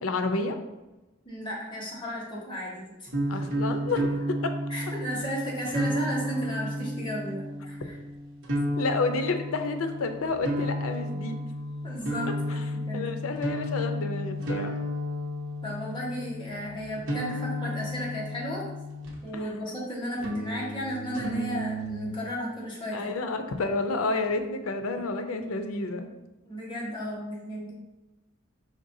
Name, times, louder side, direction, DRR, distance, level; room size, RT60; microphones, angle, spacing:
voice 1, 0.0-0.6 3.3-4.5 8.8-11.4 12.9-14.7 19.3-19.4 20.3-20.4 22.9-26.1, left 3 dB, 85° left, 7 dB, 0.5 m, -30 dB
voice 2, 1.2-3.4 4.7-8.0 11.8-13.0 15.6-18.6 19.2-23.1 26.4-27.7, equal, 25° left, -6 dB, 1.2 m, -34 dB
sound 1, 3.1-19.4 20.2-22.2, equal, 65° right, 0.9 m, -32 dB
5.1 x 3.4 x 2.7 m, 1.0 s
head